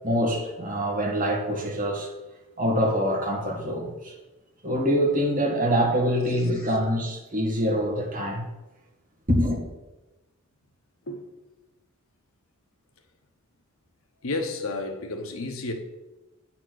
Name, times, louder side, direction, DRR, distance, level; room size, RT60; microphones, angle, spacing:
voice 1, 0.0-2.1 2.6-4.1 4.6-8.4 9.3-9.6, equal, 40° right, 1.8 m, -25 dB
voice 2, 14.2-15.7, left 2 dB, 80° left, 1.0 m, -31 dB
8.7 x 4.4 x 6.4 m
head